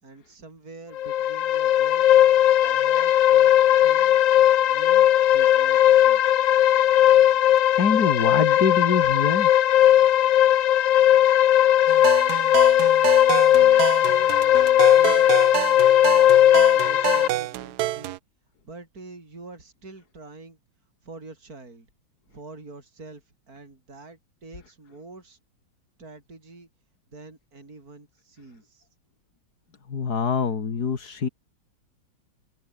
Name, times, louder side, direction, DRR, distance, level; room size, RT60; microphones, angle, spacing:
voice 1, 0.0-2.2 2.6-3.5 3.8-4.2 4.7-6.2 13.5-18.2 18.6-20.6 21.0-21.9 22.3-25.4 26.0-26.7 27.1-28.9, right 3 dB, 45° right, 5.6 m, -45 dB
sound 1, 1.0-17.3, left 11 dB, 70° left, 1.6 m, -18 dB
voice 2, 7.8-9.5 29.9-31.3, left 6 dB, 50° left, 2.5 m, -24 dB
sound 2, 11.9-18.2, right 16 dB, 75° right, 0.9 m, -29 dB
omnidirectional pair, 2.2 m